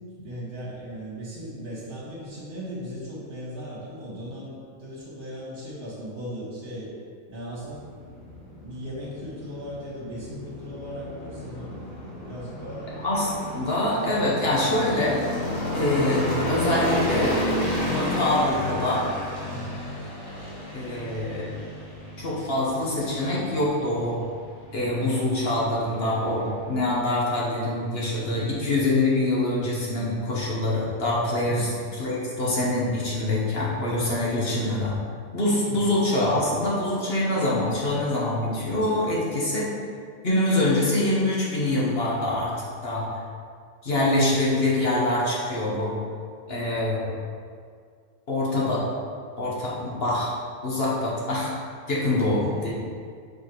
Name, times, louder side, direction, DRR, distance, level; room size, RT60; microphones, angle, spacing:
voice 1, 0.2-6.9 7.3-7.9 8.6-11.8 12.2-12.9 13.5-13.6 13.9-14.2 19.5-19.8 28.3-28.6 31.4-31.8 33.7-34.0 35.6-36.0 52.3-52.7, equal, 40° right, -7 dB, 1.8 m, -38 dB
sound 1, 7.7-27.0, left 1 dB, 65° left, 1.6 m, -32 dB
voice 2, 13.0-15.2 15.7-17.4 17.9-19.1 20.7-21.5 22.2-24.2 24.7-34.9 35.3-39.7 40.2-42.5 42.8-43.1 43.8-45.9 46.5-47.1 48.3-48.8 49.4-50.3 50.6-51.5 51.9-52.7, left 1 dB, 50° left, -5 dB, 1.4 m, -25 dB
4.9 x 4.7 x 4.7 m, 2.1 s
omnidirectional pair, 1.4 m